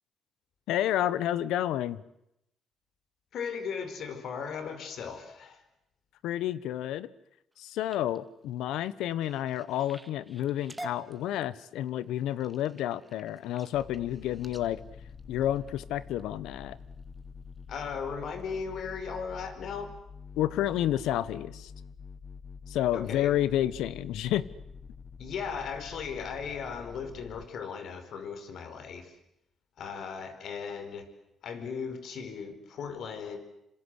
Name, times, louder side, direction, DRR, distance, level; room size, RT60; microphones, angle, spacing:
voice 1, 0.7-2.0 6.2-7.1 7.6-14.8 15.3-16.8 20.4-21.7 22.7-24.5, left 12 dB, 90° left, 17 dB, 1.1 m, -30 dB
voice 2, 3.3-5.6 17.7-19.9 22.9-23.3 25.2-29.2 29.8-31.1 31.4-33.4, left 6 dB, 70° left, 9 dB, 4.8 m, -37 dB
sound 1, 7.5-16.2 16.8-17.1 17.6-17.9 18.4-18.5 18.8-18.9, right 1 dB, 10° right, 2.3 m, -50 dB
sound 2, 13.7-27.4, left 5 dB, 40° left, 1.3 m, -47 dB
27.0 x 26.5 x 8.2 m, 0.81 s
cardioid pair, 90°, 0 cm